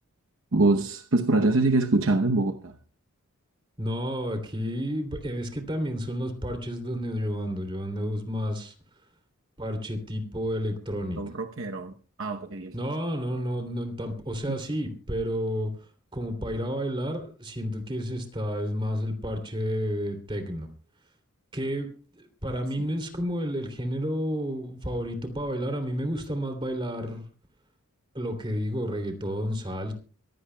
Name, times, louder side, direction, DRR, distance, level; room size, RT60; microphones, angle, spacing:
voice 1, 0.5-2.8 11.2-11.9 12.2-12.7 14.5-14.6 22.8-22.9, right 2 dB, 65° right, 0.9 m, -24 dB
voice 2, 3.8-8.7 9.6-11.2 12.7-15.7 16.1-20.7 21.5-27.2 28.1-29.9, equal, 25° right, 2.9 m, -31 dB
23.5 x 16.0 x 2.3 m
head